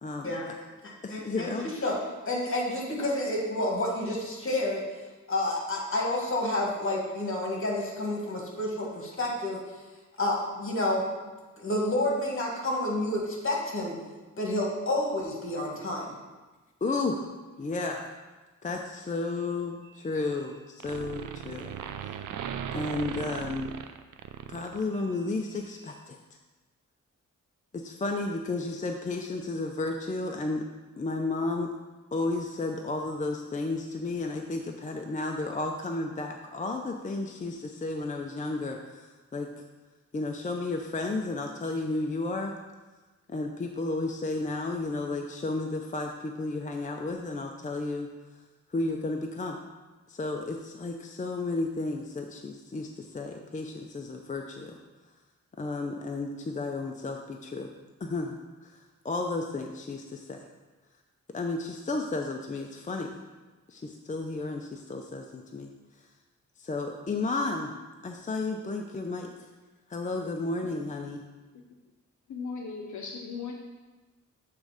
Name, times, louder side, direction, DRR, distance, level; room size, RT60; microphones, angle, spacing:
voice 1, 0.0-0.6 1.0-1.7 16.8-17.3 17.6-18.1 18.6-21.7 22.7-23.7 24.5-26.2 27.7-30.7 31.0-31.7 32.1-39.5 40.1-42.5 43.3-48.1 48.7-49.6 50.1-54.7 55.6-57.7 58.0-58.7 59.0-60.5 61.3-63.2 63.7-65.7 66.6-67.7 68.0-69.3 69.9-71.2, left 3 dB, 25° left, 3 dB, 0.5 m, -32 dB
voice 2, 1.1-2.0 2.3-4.8 5.3-9.6 10.2-11.1 11.6-14.0 14.4-16.1, left 1 dB, 45° left, -1 dB, 1.8 m, -29 dB
sound 1, 19.9-20.5 20.8-25.2, right 9 dB, 85° right, 0.5 m, -38 dB
voice 3, 72.3-73.5, left 5 dB, 75° left, 1 dB, 0.7 m, -37 dB
7.7 x 3.2 x 5.0 m, 1.2 s
cardioid pair, 75°, 30 cm